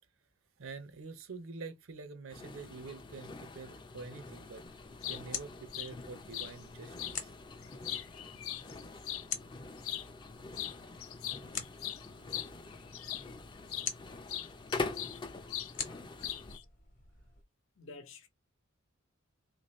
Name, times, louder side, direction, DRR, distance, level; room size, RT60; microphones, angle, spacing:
voice 1, 0.6-4.6 5.1-7.3, right 4 dB, 75° right, 0.6 m, -46 dB
sound 1, 2.3-16.6, left 3 dB, 20° left, 0.4 m, -45 dB
sound 2, 4.7-17.4, left 7 dB, 40° left, 0.9 m, -47 dB
sound 3, 4.8-5.2 5.7-5.9 6.3-6.5 7.0-7.2 7.6-9.2 9.8-10.1 10.5-10.8 11.0-13.3 13.7-13.9 14.3-15.2 15.5-15.7 16.2-16.6, left 12 dB, 90° left, 0.5 m, -39 dB
voice 2, 15.7-16.2 17.8-18.3, left 3 dB, 75° left, 0.9 m, -52 dB
3.6 x 2.6 x 3.1 m
head